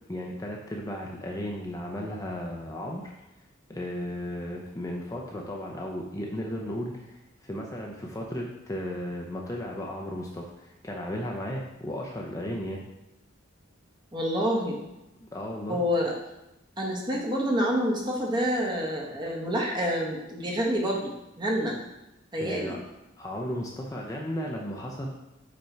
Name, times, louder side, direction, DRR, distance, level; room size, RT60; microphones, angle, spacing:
voice 1, 0.1-3.1 3.7-12.8 15.2-15.8 22.4-22.8 23.2-25.1, equal, 15° left, -1 dB, 0.6 m, -35 dB
voice 2, 14.1-14.8 15.7-16.1 16.8-21.1 21.4-21.7 22.3-22.8, equal, 20° right, -2 dB, 1.2 m, -27 dB
5.4 x 5.2 x 4.5 m, 0.94 s
head